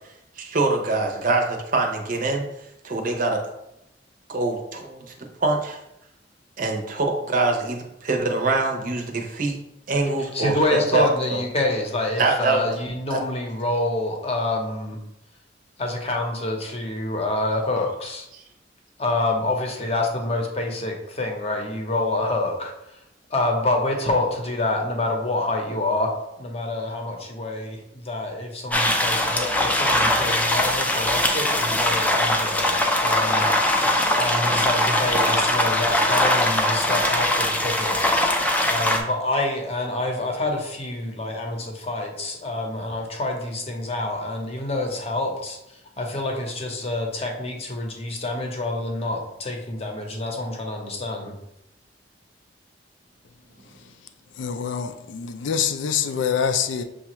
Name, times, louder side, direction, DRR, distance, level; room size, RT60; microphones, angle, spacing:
voice 1, 0.4-2.4 2.8-3.4 4.3-5.8 6.6-9.6 9.9-11.4 12.2-12.6 13.1-13.2, right 3 dB, 45° right, 0.7 m, -24 dB
voice 2, 10.3-15.0 15.8-18.3 19.0-22.7 23.3-26.1 26.4-33.5 34.2-38.0 38.7-45.6 46.0-51.3, left 2 dB, 35° left, 0.8 m, -27 dB
sound 1, 28.7-39.0, left 1 dB, 10° left, 0.4 m, -21 dB
voice 3, 54.4-56.8, left 7 dB, 75° left, 0.4 m, -25 dB
6.6 x 2.4 x 2.9 m
head